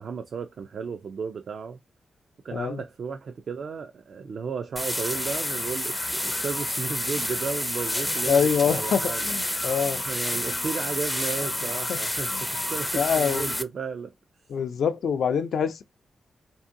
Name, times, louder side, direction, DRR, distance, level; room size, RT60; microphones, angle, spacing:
voice 1, 0.0-1.8 2.4-9.3 10.1-14.1, right 5 dB, 65° right, 0.3 m, -34 dB
sound 1, 4.8-13.6, left 1 dB, 10° left, 0.4 m, -29 dB
voice 2, 8.3-10.0 11.9-12.0 12.3-12.4 12.9-13.5 14.5-15.8, left 7 dB, 80° left, 0.4 m, -25 dB
2.6 x 2.5 x 2.5 m
cardioid pair, 60°, 0 cm